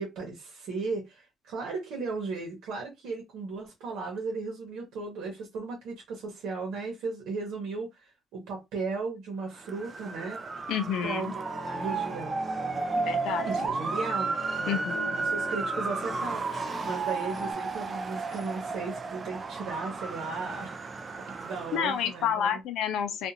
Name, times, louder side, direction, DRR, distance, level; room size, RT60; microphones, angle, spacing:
voice 1, 0.0-10.4 11.0-12.4 13.4-14.8 15.2-20.8 21.3-22.6, right 4 dB, 80° right, 1.0 m, -36 dB
Motor vehicle (road) / Siren, 9.6-22.3, right 4 dB, 25° right, 0.3 m, -33 dB
voice 2, 10.7-11.4 13.0-13.5 14.7-15.2 21.7-23.3, left 8 dB, 80° left, 0.5 m, -29 dB
sound 1, 11.1-17.5, left 2 dB, 20° left, 0.9 m, -40 dB
2.5 x 2.5 x 2.8 m
cardioid pair, 150°, 0 cm